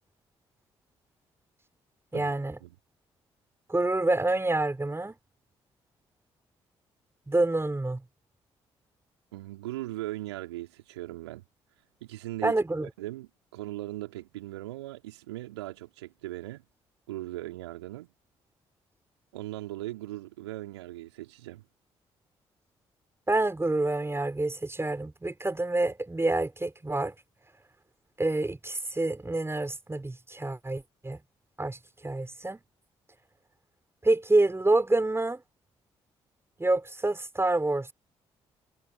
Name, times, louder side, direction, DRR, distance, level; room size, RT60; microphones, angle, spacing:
voice 1, 2.1-2.6 3.7-5.1 7.3-8.0 12.4-12.9 23.3-27.1 28.2-31.2 31.6-31.8 32.0-32.6 34.0-35.4 36.6-37.9, right 2 dB, 15° right, 6.1 m, -27 dB
voice 2, 9.3-11.4 12.0-12.6 13.0-16.6 17.1-18.1 19.3-21.6, right 16 dB, 80° right, 4.5 m, -39 dB
figure-of-eight pair, 40°, 14 cm